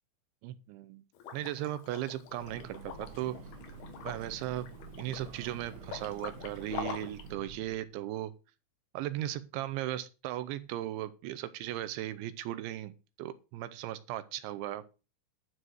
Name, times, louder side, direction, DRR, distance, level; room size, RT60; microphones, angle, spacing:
voice 1, 0.4-1.0 1.3-3.4 4.0-4.7 5.0-8.3 8.9-14.8, right 13 dB, 80° right, 3.0 m, -37 dB
Liquid, 1.1-7.3, left 7 dB, 60° left, 3.2 m, -45 dB
Breathing / Train, 2.2-7.9, right 4 dB, 65° right, 2.1 m, -49 dB
12.5 x 6.4 x 6.4 m
omnidirectional pair, 5.6 m